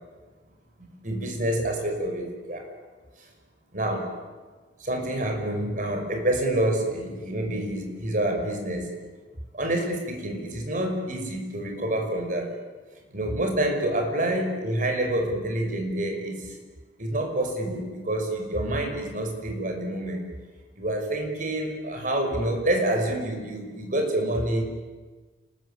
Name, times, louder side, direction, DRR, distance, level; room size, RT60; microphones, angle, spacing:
voice 1, 0.8-2.6 3.2-3.3 3.7-4.1 4.8-8.9 9.5-12.5 13.1-16.6 17.0-20.3 20.8-24.7, right 1 dB, 50° right, 4 dB, 5.9 m, -27 dB
29.5 x 21.0 x 9.2 m, 1.3 s
head